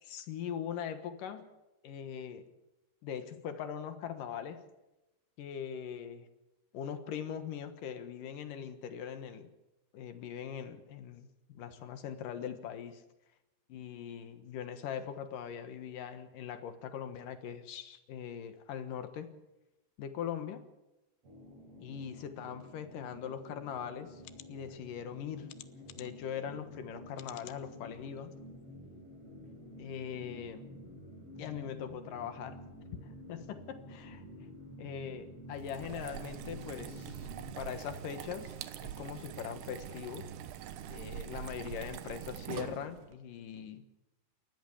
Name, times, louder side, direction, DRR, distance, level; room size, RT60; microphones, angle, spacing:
voice 1, 0.0-1.5 1.8-2.5 3.0-4.6 5.4-6.3 6.7-9.5 9.9-13.0 13.7-19.3 20.0-20.6 21.8-24.2 24.5-25.5 26.0-28.3 29.8-30.7 31.4-32.6 33.0-34.2 34.8-37.3 37.6-40.3 40.9-43.8, left 8 dB, 65° left, 9 dB, 2.6 m, -41 dB
sound 1, 21.2-37.5, equal, 35° right, 4.2 m, -50 dB
sound 2, 23.4-23.5 24.2-24.5 25.5-26.3 27.1-27.6 28.2-28.3 28.6-28.7, left 15 dB, 85° left, 3.0 m, -51 dB
sound 3, 35.5-43.1, right 10 dB, 80° right, 3.0 m, -44 dB
29.0 x 14.0 x 7.2 m, 0.98 s
omnidirectional pair, 4.8 m